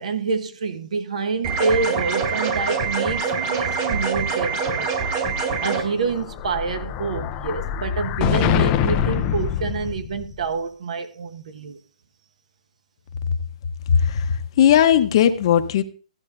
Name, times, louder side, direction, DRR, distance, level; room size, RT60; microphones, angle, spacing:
voice 1, 0.0-4.9 5.6-11.8, right 4 dB, 65° right, 1.3 m, -27 dB
sound 1, 1.4-5.8, right 5 dB, 30° right, 2.0 m, -24 dB
Explosion, 5.8-10.4, left 9 dB, 20° left, 0.5 m, -24 dB
voice 2, 13.9-15.8, left 9 dB, 40° left, 0.9 m, -17 dB
15.0 x 11.0 x 2.6 m
hypercardioid pair, 160°, 4 cm